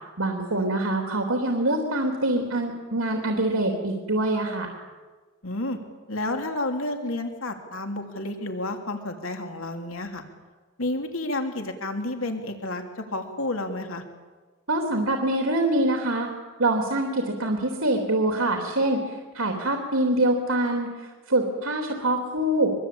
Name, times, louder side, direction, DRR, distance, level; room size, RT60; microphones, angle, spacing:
voice 1, 0.2-4.7 14.7-16.3 16.6-22.7, right 1 dB, 90° right, 2 dB, 3.4 m, -25 dB
voice 2, 5.4-5.8 6.1-10.2 10.8-14.0, left 2 dB, 80° left, 4 dB, 3.0 m, -30 dB
24.5 x 23.5 x 8.7 m, 1.4 s
head